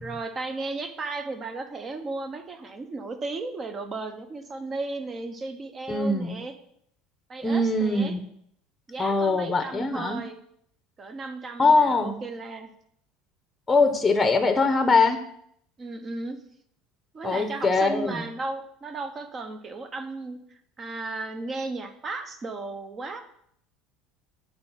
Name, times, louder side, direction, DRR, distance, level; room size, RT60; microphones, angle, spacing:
voice 1, 0.0-6.5 7.3-8.1 8.9-10.4 11.0-12.7 15.8-16.4 17.1-20.4 20.8-23.2, right 3 dB, 30° right, 8 dB, 1.1 m, -35 dB
voice 2, 5.9-6.4 7.4-8.2 9.0-10.2 11.6-12.2 13.7-15.2 17.2-18.2, left 3 dB, 15° left, 7 dB, 0.9 m, -22 dB
8.7 x 4.4 x 5.8 m, 0.70 s
supercardioid pair, 125°, 0 cm